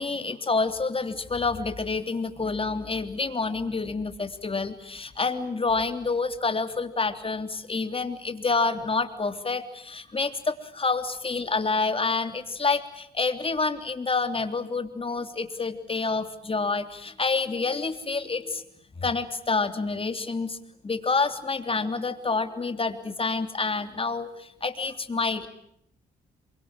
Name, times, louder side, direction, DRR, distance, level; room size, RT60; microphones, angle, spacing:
voice 1, 0.0-18.6 19.0-20.6 20.8-25.5, left 4 dB, 30° left, 9 dB, 3.3 m, -28 dB
28.0 x 24.0 x 9.0 m, 0.72 s
cardioid pair, 70°, 18 cm